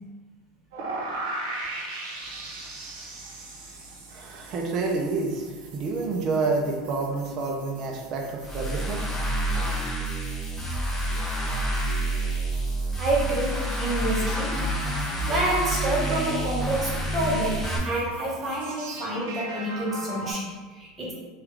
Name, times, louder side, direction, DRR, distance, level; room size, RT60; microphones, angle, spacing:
sound 1, 0.7-20.3, right 2 dB, 85° right, 0.7 m, -41 dB
voice 1, 3.6-9.0 9.6-9.8, right 3 dB, 40° right, 0 dB, 0.4 m, -29 dB
sound 2, 8.4-17.8, right 1 dB, 10° left, 0.7 m, -28 dB
voice 2, 13.0-14.7 15.3-21.1, right 2 dB, 20° right, -5 dB, 0.8 m, -28 dB
3.5 x 2.3 x 3.2 m, 1.3 s
supercardioid pair, 155°, 0 cm